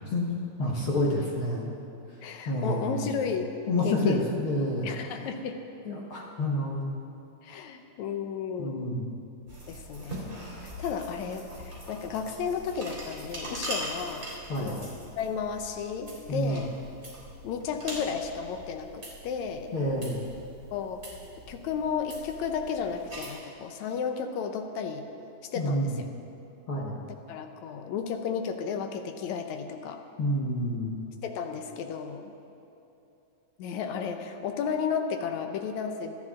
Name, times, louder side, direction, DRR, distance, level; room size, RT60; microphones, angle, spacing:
voice 1, 0.1-1.7 2.4-3.1 3.7-4.9 5.8-6.9 8.6-9.0 14.5-14.8 16.3-16.6 19.7-20.2 25.5-26.0 26.7-27.0 30.2-31.0, left 1 dB, 55° left, -3 dB, 1.5 m, -28 dB
voice 2, 2.2-3.5 3.8-4.2 4.8-5.6 7.4-9.0 9.7-14.3 14.6-14.9 15.2-16.7 17.4-19.7 20.7-21.0 21.5-25.1 25.5-26.1 27.3-30.0 31.2-32.2 33.6-36.2, left 6 dB, 75° left, 6 dB, 1.7 m, -33 dB
sound 1, 9.5-23.3, right 1 dB, 15° right, 3.3 m, -42 dB
26.0 x 11.5 x 3.7 m, 2.9 s
omnidirectional pair, 4.3 m